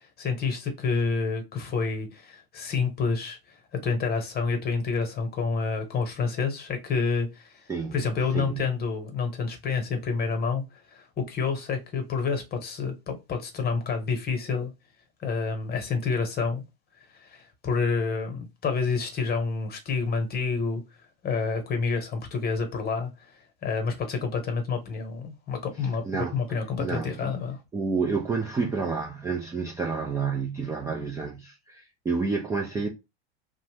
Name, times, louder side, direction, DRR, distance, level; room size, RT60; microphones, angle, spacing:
voice 1, 0.0-14.7 15.2-16.7 17.1-20.8 21.2-23.1 23.6-27.6, left 5 dB, 30° left, 1.0 m, -28 dB
voice 2, 8.3-8.7 26.0-26.3 26.8-27.4 27.7-32.9, right 4 dB, 10° right, 0.3 m, -29 dB
2.6 x 2.1 x 3.2 m
hypercardioid pair, 95°, 31 cm